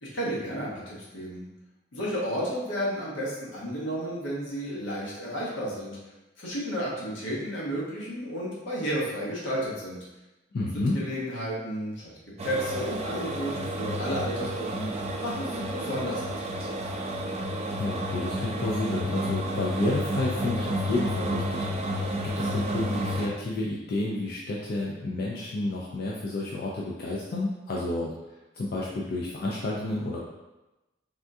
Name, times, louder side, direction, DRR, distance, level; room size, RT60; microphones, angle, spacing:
voice 1, 0.0-1.4 1.9-6.0 6.4-10.0 10.7-12.1 12.4-14.9 15.2-16.8, equal, 80° left, -5 dB, 1.0 m, -32 dB
voice 2, 10.5-11.0 17.8-28.1 28.5-30.2, left 2 dB, 55° left, -4 dB, 0.4 m, -30 dB
sound 1, 12.4-23.3, equal, 35° right, 0.3 m, -31 dB
3.5 x 2.3 x 2.6 m, 1.0 s
head